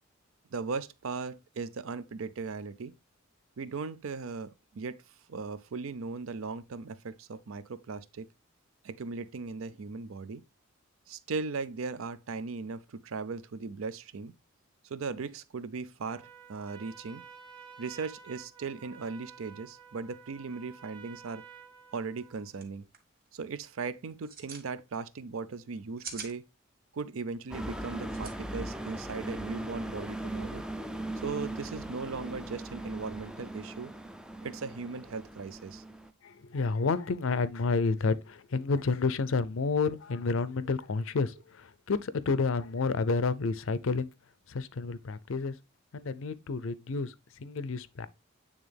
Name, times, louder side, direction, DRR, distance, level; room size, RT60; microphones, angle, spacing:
voice 1, 0.5-2.9 3.6-5.0 5.3-8.3 8.8-10.4 11.1-14.3 14.8-17.2 17.8-21.4 21.9-22.8 23.3-26.4 26.9-30.6 31.2-33.9 34.4-35.8, right 4 dB, 75° right, 0.5 m, -38 dB
Trumpet, 16.0-22.5, right 6 dB, 25° right, 1.0 m, -51 dB
sound 1, 22.2-22.3 22.5-22.6 22.9-23.3 24.1-24.7 25.7-26.3 28.1-28.3, right 6 dB, 45° right, 1.3 m, -43 dB
sound 2, 27.5-36.1, right 1 dB, 5° right, 0.3 m, -39 dB
voice 2, 36.2-44.1 44.5-45.6 45.9-48.1, left 4 dB, 65° left, 0.5 m, -30 dB
8.8 x 3.5 x 3.3 m
head